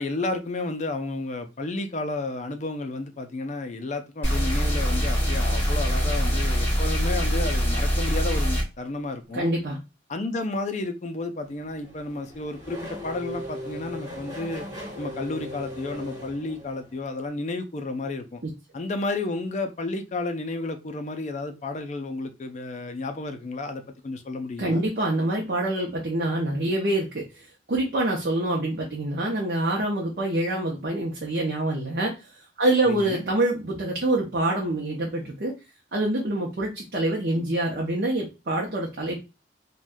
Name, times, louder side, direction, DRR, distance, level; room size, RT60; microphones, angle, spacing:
voice 1, 0.0-9.5 10.1-14.7 15.0-18.4 18.7-24.8 32.9-33.3, left 2 dB, 35° left, 0.4 m, -32 dB
sound 1, 4.2-8.6, equal, 10° left, 1.6 m, -23 dB
voice 2, 9.3-9.8 18.4-18.5 24.6-27.2 27.7-32.1 32.6-35.5 35.9-39.2, right 1 dB, 55° right, 0.6 m, -26 dB
Race car auto racing / Accelerating revving vroom, 11.5-17.0, equal, 20° right, 1.0 m, -38 dB
3.5 x 2.2 x 2.5 m
head